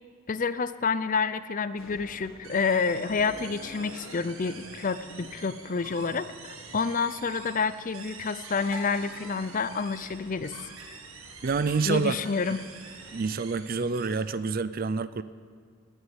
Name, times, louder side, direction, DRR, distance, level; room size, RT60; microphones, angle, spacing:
voice 1, 0.3-10.5 11.8-12.6, left 5 dB, 40° left, 14 dB, 0.5 m, -29 dB
sound 1, 1.8-14.3, left 2 dB, 75° left, 1.9 m, -50 dB
sound 2, 2.4-14.1, right 6 dB, 85° right, 1.5 m, -47 dB
sound 3, 5.8-6.3 6.6-6.7 7.3-7.7 8.7-9.1 10.5-11.1 11.7-12.4, right 1 dB, 60° right, 2.5 m, -47 dB
voice 2, 11.4-12.2 13.1-15.2, right 4 dB, 45° right, 14 dB, 0.5 m, -27 dB
19.5 x 8.1 x 8.2 m, 2.1 s
head